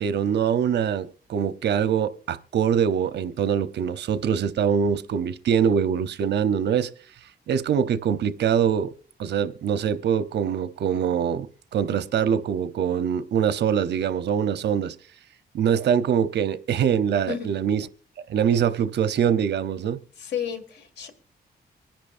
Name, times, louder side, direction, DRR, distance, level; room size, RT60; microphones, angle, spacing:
voice 1, 0.0-6.9 7.5-8.9 9.2-15.0 15.5-17.9 18.3-20.0, right 8 dB, 85° right, 0.8 m, -23 dB
voice 2, 20.2-21.1, left 8 dB, 85° left, 2.0 m, -32 dB
24.5 x 10.5 x 2.5 m
wide cardioid pair, 130°, 17 cm